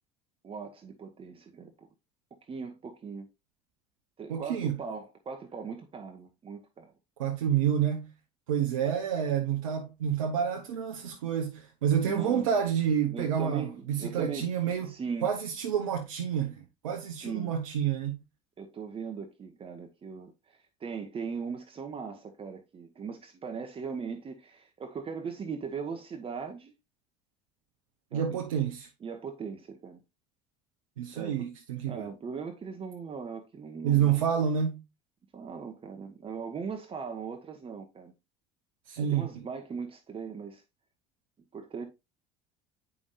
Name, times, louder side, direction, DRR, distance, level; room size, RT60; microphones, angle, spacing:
voice 1, 0.4-1.7 2.5-3.3 4.2-6.9 12.0-12.5 13.1-14.5 14.8-15.3 17.2-17.5 18.6-26.7 28.1-28.4 29.0-30.0 31.1-31.5 31.9-34.2 35.3-38.1 39.0-40.6 41.5-41.9, right 5 dB, 35° right, 1.1 m, -39 dB
voice 2, 4.3-4.8 7.2-8.1 8.5-18.2 28.1-28.9 31.0-32.1 33.8-34.8 38.9-39.2, right 8 dB, 80° right, 0.8 m, -29 dB
8.4 x 5.4 x 2.5 m
hypercardioid pair, 65°, 17 cm